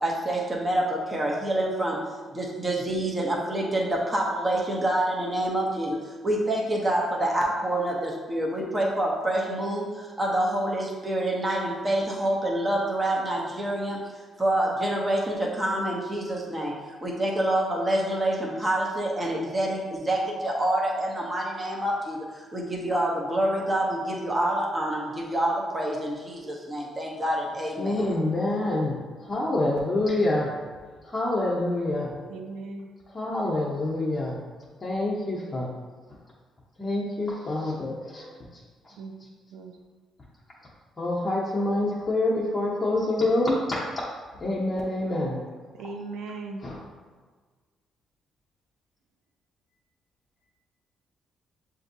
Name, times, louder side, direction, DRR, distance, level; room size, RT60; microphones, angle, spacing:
voice 1, 0.0-2.0 2.3-14.0 14.4-16.7 17.0-27.9, right 1 dB, 20° right, -2 dB, 0.8 m, -27 dB
voice 2, 27.8-30.5 31.0-32.1 33.1-34.4 34.8-35.7 36.1-36.2 36.8-39.0 41.0-44.1 44.3-45.4 46.6-46.8, left 2 dB, 30° left, -6 dB, 0.8 m, -27 dB
voice 3, 32.3-32.9 39.0-39.1 39.5-39.8 45.7-46.6, right 3 dB, 85° right, 4 dB, 0.4 m, -38 dB
6.9 x 2.6 x 2.6 m, 1.5 s
cardioid pair, 90°, 0 cm